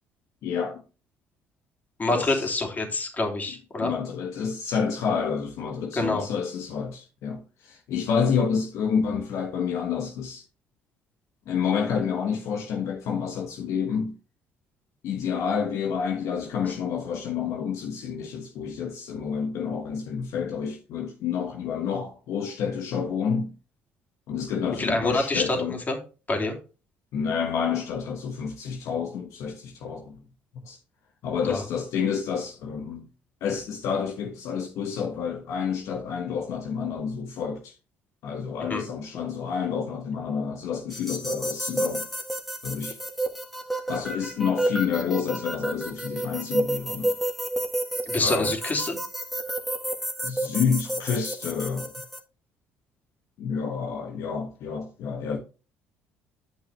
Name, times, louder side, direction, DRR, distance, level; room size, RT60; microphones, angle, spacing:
voice 1, 0.4-0.8 2.1-2.5 3.8-10.4 11.5-14.1 15.0-23.5 24.3-25.8 27.1-30.2 30.6-30.8 31.2-33.1 33.4-37.8 38.2-42.1 42.6-43.0 43.9-47.2 48.2-48.5 50.2-51.9 53.4-55.4, left 6 dB, 70° left, 1.2 m, -29 dB
voice 2, 2.0-3.9 6.0-6.3 16.7-16.8 24.8-25.6 25.9-26.0 26.3-26.6 31.5-31.6 38.7-38.8 48.1-49.0, left 2 dB, 30° left, 3.0 m, -26 dB
sound 1, 40.9-52.2, right 1 dB, ahead, 1.8 m, -30 dB
9.0 x 5.7 x 3.4 m
supercardioid pair, 70°, 5 cm